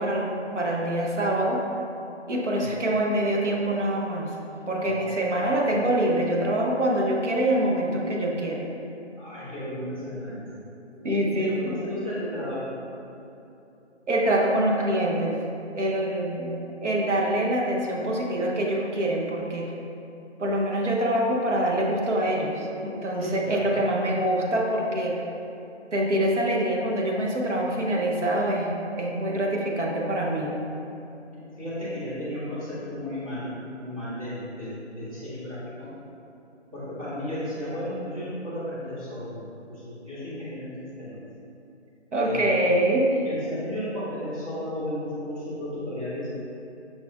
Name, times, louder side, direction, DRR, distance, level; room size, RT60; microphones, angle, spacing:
voice 1, 0.0-1.6 2.3-4.3 4.7-8.6 11.0-11.8 14.1-15.4 15.8-16.5 16.8-19.7 20.4-25.2 25.9-28.7 29.0-30.6 42.1-43.1, right 1 dB, 80° right, -1 dB, 0.9 m, -25 dB
voice 2, 4.8-5.6 9.2-10.7 10.9-12.8 23.2-23.7 31.6-35.9 36.7-41.2 42.2-42.6 43.1-46.3, equal, 30° right, -13 dB, 1.4 m, -34 dB
5.8 x 3.5 x 2.4 m, 2.9 s
figure-of-eight pair, 175°, 36 cm